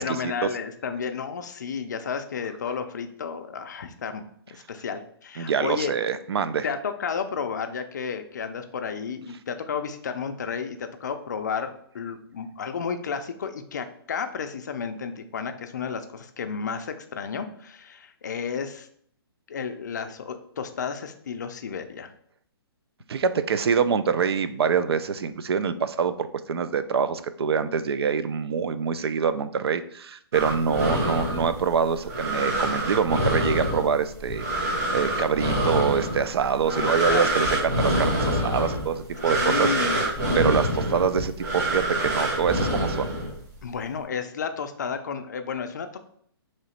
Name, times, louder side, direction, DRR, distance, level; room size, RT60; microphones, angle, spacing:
voice 1, 0.0-5.9 6.6-18.9 19.5-22.1 36.6-37.3 39.2-40.1 43.6-46.0, left 6 dB, 45° left, 8 dB, 0.4 m, -32 dB
voice 2, 5.4-6.7 23.1-39.7 40.3-43.1, right 6 dB, 75° right, 12 dB, 0.4 m, -25 dB
sound 1, 30.3-43.6, right 1 dB, 45° right, 1.4 m, -26 dB
3.1 x 2.9 x 4.2 m, 0.65 s
hypercardioid pair, 175°, 13 cm